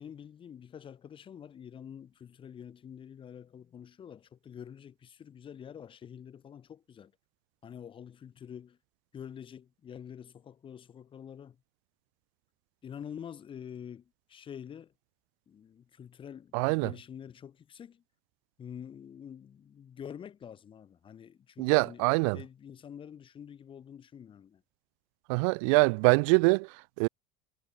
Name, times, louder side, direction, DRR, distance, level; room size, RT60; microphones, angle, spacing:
voice 1, 0.0-7.1 7.6-8.8 9.1-11.6 12.8-14.9 15.5-18.0 18.6-22.1 22.3-24.6, left 8 dB, 30° left, 3.5 m, -47 dB
voice 2, 16.5-16.9 21.6-22.4 25.3-27.1, right 35 dB, 75° right, 0.7 m, -24 dB
supercardioid pair, 135°, 17 cm